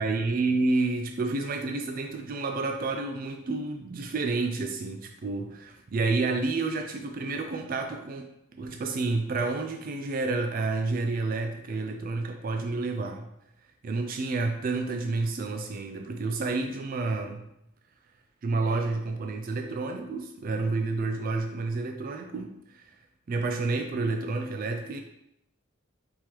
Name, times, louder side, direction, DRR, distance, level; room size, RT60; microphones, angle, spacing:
voice 1, 0.0-13.3 13.8-17.5 18.4-22.8 23.3-25.0, right 3 dB, 45° right, 4 dB, 0.3 m, -30 dB
4.6 x 3.6 x 2.9 m, 0.81 s
head